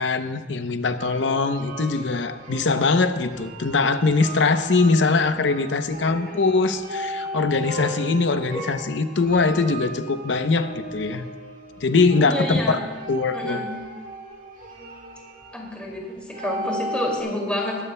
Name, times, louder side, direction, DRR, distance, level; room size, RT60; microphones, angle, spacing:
voice 1, 0.0-11.2 11.8-12.6 13.1-13.6, left 3 dB, 85° left, 9 dB, 0.7 m, -22 dB
sound 1, 1.0-17.2, equal, 50° right, 1.6 m, -36 dB
voice 2, 12.2-12.7 13.3-13.7 15.5-17.8, left 1 dB, 5° left, -3 dB, 2.3 m, -29 dB
21.0 x 12.5 x 2.2 m, 1.3 s
head